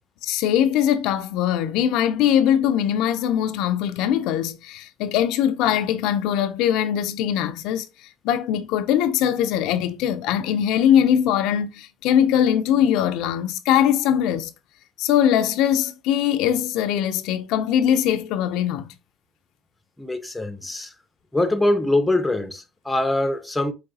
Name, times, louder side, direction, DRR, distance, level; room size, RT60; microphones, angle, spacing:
voice 1, 0.2-14.5 15.0-18.9, left 10 dB, 75° left, 0.4 m, -21 dB
voice 2, 20.0-20.9 21.3-23.7, left 1 dB, 5° left, 0.7 m, -23 dB
4.6 x 3.1 x 2.7 m
cardioid pair, 105°, 0 cm